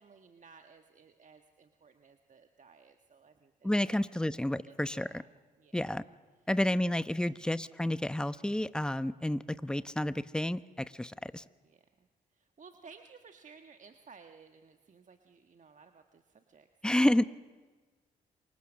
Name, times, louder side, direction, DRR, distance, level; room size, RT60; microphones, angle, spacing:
voice 1, 0.0-4.3 4.6-5.3 5.6-5.8 7.2-7.4 9.7-9.9 11.6-12.1 12.3-17.0, right 5 dB, 45° right, 6 dB, 1.5 m, -57 dB
voice 2, 3.6-5.2 5.7-6.0 6.5-11.4 16.8-17.2, left 1 dB, 5° left, 14 dB, 1.0 m, -30 dB
27.5 x 24.5 x 6.5 m, 1.4 s
hypercardioid pair, 45°, 19 cm